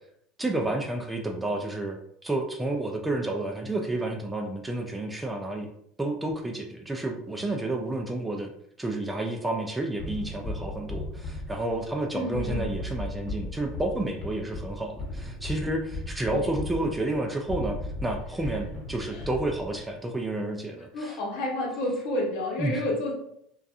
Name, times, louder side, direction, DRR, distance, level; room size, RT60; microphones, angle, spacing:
voice 1, 0.4-5.7 6.0-8.5 8.8-21.2 22.6-22.8, right 2 dB, 10° right, 3 dB, 0.3 m, -30 dB
sound 1, 10.0-19.9, left 1 dB, 35° left, 0.9 m, -36 dB
voice 2, 12.1-12.7 16.3-16.5 19.1-19.3 20.9-23.1, left 1 dB, 65° left, -1 dB, 0.9 m, -30 dB
2.5 x 2.3 x 2.4 m, 0.72 s
supercardioid pair, 105°, 0 cm